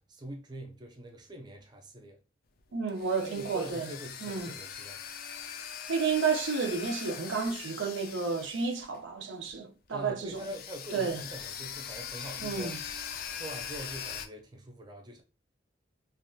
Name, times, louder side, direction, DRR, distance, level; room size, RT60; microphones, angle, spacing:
voice 1, 0.1-2.2 3.2-5.0 9.9-12.8 13.3-15.2, right 1 dB, 20° right, 0.4 m, -44 dB
sound 1, 2.6-9.2 9.5-9.6 10.2-14.3, left 7 dB, 50° left, 0.3 m, -41 dB
voice 2, 2.7-3.9 4.2-4.5 5.9-10.5 10.9-11.2 12.4-12.8, right 5 dB, 75° right, 0.5 m, -31 dB
3.3 x 2.3 x 2.6 m
head